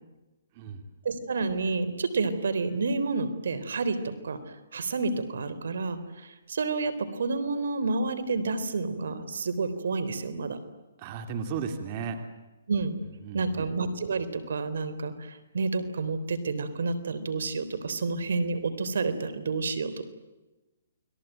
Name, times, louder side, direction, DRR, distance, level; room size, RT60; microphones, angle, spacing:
voice 1, 0.5-0.9 11.0-12.2 13.2-13.7, right 6 dB, 35° right, 7 dB, 3.1 m, -35 dB
voice 2, 1.0-4.4 4.7-10.6 12.7-13.0 13.3-20.1, right 3 dB, 75° right, 12 dB, 3.6 m, -29 dB
29.5 x 21.5 x 9.1 m, 1.1 s
hypercardioid pair, 155°, 0 cm